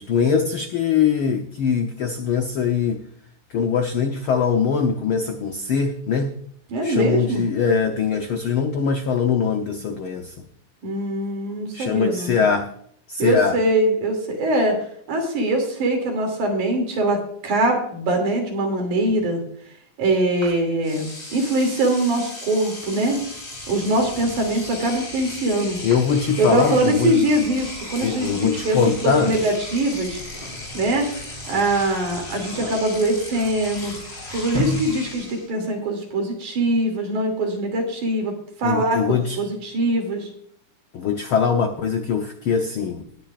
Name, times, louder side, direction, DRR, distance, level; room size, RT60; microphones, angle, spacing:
voice 1, 0.0-3.0 3.5-6.3 6.8-10.3 11.7-12.7 13.1-13.6 25.8-27.1 28.0-29.3 38.6-39.4 40.9-43.2, left 6 dB, 85° left, 5 dB, 1.1 m, -22 dB
voice 2, 6.7-7.4 10.8-12.4 13.2-14.8 15.1-19.4 20.0-23.2 23.7-25.8 26.4-28.8 29.0-30.2 30.7-31.1 31.5-33.9 34.3-38.3 38.6-39.0 39.4-40.3, right 1 dB, 70° right, 2 dB, 4.2 m, -22 dB
Engine / Domestic sounds home sounds, 20.4-20.5 20.8-35.5, left 2 dB, 25° left, 3.6 m, -37 dB
sound 1, 22.9-35.3, equal, 35° right, 6.3 m, -37 dB
19.0 x 10.5 x 2.5 m, 0.63 s
omnidirectional pair, 3.6 m